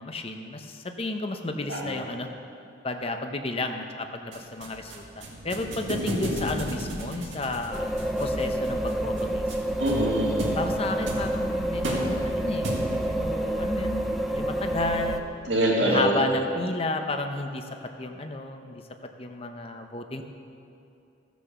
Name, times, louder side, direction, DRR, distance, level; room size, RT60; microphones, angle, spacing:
voice 1, 0.0-2.3 2.8-5.1 5.4-7.9 8.2-9.8 10.6-14.0 14.3-15.2 15.8-17.6 18.0-18.8 19.2-20.2, left 2 dB, 30° left, 5 dB, 0.8 m, -32 dB
sound 1, 4.3-13.2, right 1 dB, 85° right, 2.0 m, -35 dB
sound 2, 7.7-15.2, right 1 dB, ahead, 0.6 m, -28 dB
voice 2, 9.8-10.6 15.5-16.1, right 1 dB, 70° right, -5 dB, 2.2 m, -25 dB
15.0 x 6.2 x 6.9 m, 2.7 s
head